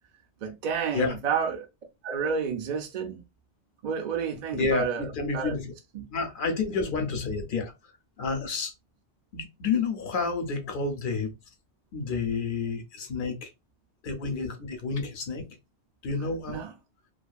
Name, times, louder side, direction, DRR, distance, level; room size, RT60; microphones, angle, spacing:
voice 1, 0.4-1.7 2.0-3.2 3.8-5.6 5.9-6.0 16.5-16.7, right 6 dB, 55° right, 0.5 m, -30 dB
voice 2, 4.5-5.7 6.1-7.7 8.2-8.7 9.3-11.3 11.9-13.5 14.0-15.5 16.0-16.6, left 4 dB, 55° left, 0.8 m, -30 dB
2.5 x 2.4 x 2.3 m
omnidirectional pair, 1.1 m